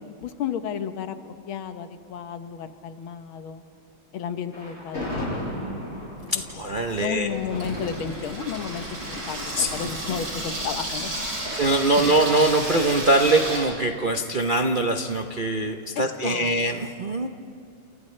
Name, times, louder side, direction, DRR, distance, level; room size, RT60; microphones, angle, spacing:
voice 1, 0.2-1.2 1.5-3.6 4.1-5.5 6.3-6.4 7.0-11.1 16.0-16.6, left 8 dB, 85° left, 9 dB, 1.8 m, -33 dB
Thunder, 4.5-11.7, left 1 dB, 30° left, 8.1 m, -36 dB
voice 2, 6.3-7.4 9.6-9.8 10.1-10.2 11.5-17.3, right 2 dB, 55° right, 4 dB, 0.5 m, -23 dB
Water tap faucet / Sink (filling or washing), 6.5-13.6, right 1 dB, 80° right, 7.1 m, -32 dB
29.5 x 29.0 x 3.3 m, 2.4 s
omnidirectional pair, 2.2 m